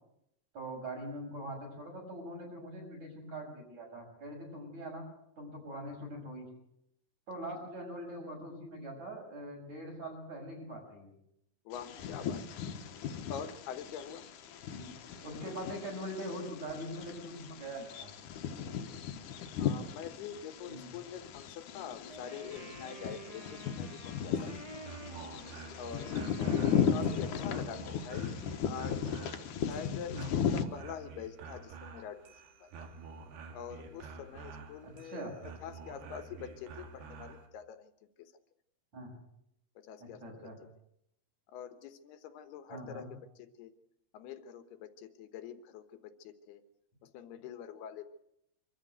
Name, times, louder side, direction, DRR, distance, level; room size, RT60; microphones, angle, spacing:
voice 1, 0.5-5.0 5.4-6.5 7.3-11.1 14.7-14.9 15.2-18.1 20.7-20.9 26.2-26.7 30.1-30.3 34.8-35.4 38.9-39.1 40.0-40.6 42.7-43.1, right 1 dB, 45° right, 1 dB, 7.7 m, -43 dB
voice 2, 11.7-12.4 13.3-14.3 18.7-19.0 19.6-24.5 25.8-26.1 26.9-28.3 28.6-32.2 32.6-32.9 33.5-35.3 35.6-37.9 38.2-38.3 39.8-40.5 41.5-43.1 43.4-43.7 44.1-46.6 47.0-48.1, left 8 dB, 80° left, 10 dB, 3.2 m, -45 dB
Bird vocalization bird call bird song, 11.7-30.6, left 7 dB, 65° left, 2.4 m, -36 dB
Wind instrument woodwind instrument, 22.1-27.9, right 1 dB, 15° right, 1.5 m, -50 dB
sound 1, 24.2-37.5, right 5 dB, 80° right, 4.0 m, -49 dB
25.5 x 13.5 x 8.0 m, 0.79 s
omnidirectional pair, 4.6 m